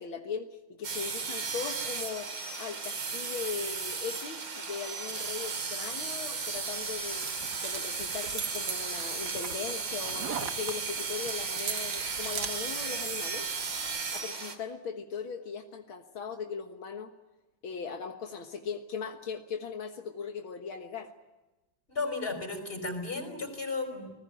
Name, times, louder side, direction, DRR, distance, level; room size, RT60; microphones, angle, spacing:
voice 1, 0.0-7.3 7.6-13.5 14.1-17.1 17.6-21.1, left 6 dB, 80° left, 4 dB, 2.3 m, -39 dB
sound 1, 0.8-14.6, right 4 dB, 85° right, 3.4 m, -35 dB
sound 2, 6.5-14.0, right 7 dB, 55° right, 1.8 m, -41 dB
voice 2, 21.9-24.1, left 3 dB, 25° left, 7 dB, 5.1 m, -34 dB
29.5 x 20.5 x 9.0 m, 1.1 s
omnidirectional pair, 2.2 m